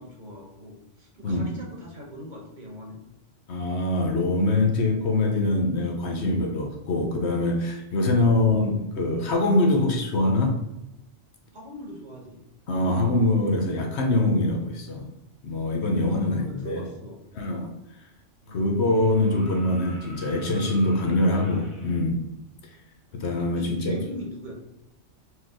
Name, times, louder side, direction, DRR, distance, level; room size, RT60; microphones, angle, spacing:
voice 1, 0.0-3.0 11.5-12.4 16.0-17.2 18.4-18.6 23.4-24.5, equal, 45° right, -1 dB, 1.1 m, -40 dB
voice 2, 3.5-10.6 12.7-15.1 15.4-16.8 17.3-17.7 18.5-22.2 22.6-22.8 23.1-24.0, left 2 dB, 65° left, 2 dB, 1.1 m, -24 dB
sound 1, 18.8-22.0 23.8-23.9, equal, 25° left, 1.2 m, -46 dB
4.5 x 3.0 x 3.7 m, 0.91 s
omnidirectional pair, 1.2 m